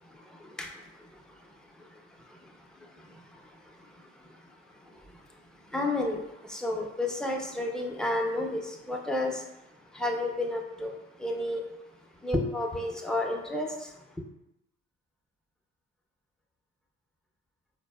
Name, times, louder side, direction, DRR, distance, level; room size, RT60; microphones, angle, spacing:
voice 1, 0.0-14.2, left 1 dB, ahead, 1 dB, 0.5 m, -34 dB
4.0 x 2.0 x 2.2 m, 0.90 s
supercardioid pair, 55°, 33 cm